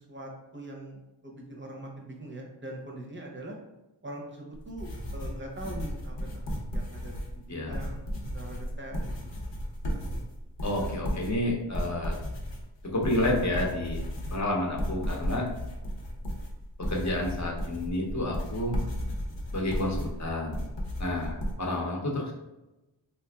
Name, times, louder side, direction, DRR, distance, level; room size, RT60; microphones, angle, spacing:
voice 1, 0.0-3.6 4.0-8.0 8.3-9.1, right 1 dB, 25° right, -1 dB, 0.7 m, -42 dB
sound 1, 4.5-21.5, equal, 70° left, 0.8 m, -34 dB
voice 2, 10.6-12.2 12.8-14.0 14.3-15.5 16.9-18.8 19.5-20.6 21.0-22.3, left 1 dB, 35° left, -1 dB, 0.8 m, -30 dB
3.5 x 2.8 x 2.3 m, 0.99 s
wide cardioid pair, 80°, 46 cm